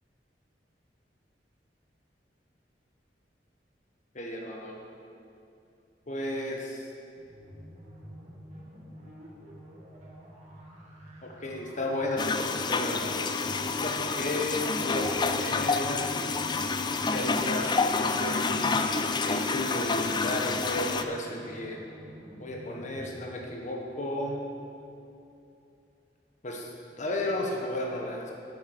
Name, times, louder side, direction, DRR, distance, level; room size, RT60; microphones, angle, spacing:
voice 1, 4.1-4.8 6.1-6.8 11.2-13.2 13.8-16.1 17.1-18.5 19.0-21.8 22.4-24.4 26.4-26.7 27.0-28.3, left 1 dB, 45° left, 0 dB, 1.4 m, -33 dB
sound 1, 7.2-23.2, right 1 dB, 40° right, 1.9 m, -48 dB
sound 2, 12.2-21.0, left 4 dB, 25° left, 0.4 m, -28 dB
8.7 x 7.4 x 6.5 m, 2.7 s
head